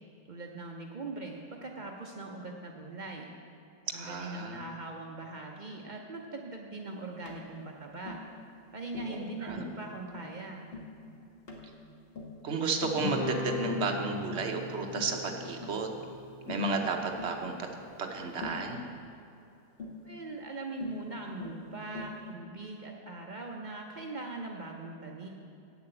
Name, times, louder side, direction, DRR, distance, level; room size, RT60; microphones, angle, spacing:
voice 1, 0.3-3.3 3.9-8.2 8.7-10.7 20.0-25.3, right 2 dB, 75° right, 0 dB, 0.4 m, -41 dB
voice 2, 3.9-4.6 9.1-9.6 12.4-15.9 16.5-17.7 18.0-18.8, right 3 dB, 50° right, 3 dB, 1.0 m, -33 dB
Tap, 7.2-7.4 8.1-8.3 8.9-9.2 9.5-9.7 10.1-10.3 10.7-10.9 11.5-11.7 12.1-12.4 12.8-13.1 13.6-13.9 14.3-14.5 15.0-15.2 15.6-15.8 16.5-16.7 17.2-17.4 18.4-18.7 19.8-20.0 20.8-21.0 21.4-21.6 21.9-22.2, left 3 dB, 35° left, 1.4 m, -42 dB
Guitar, 13.0-17.6, left 2 dB, 55° left, 1.6 m, -39 dB
8.6 x 7.0 x 7.9 m, 2.7 s
omnidirectional pair, 2.0 m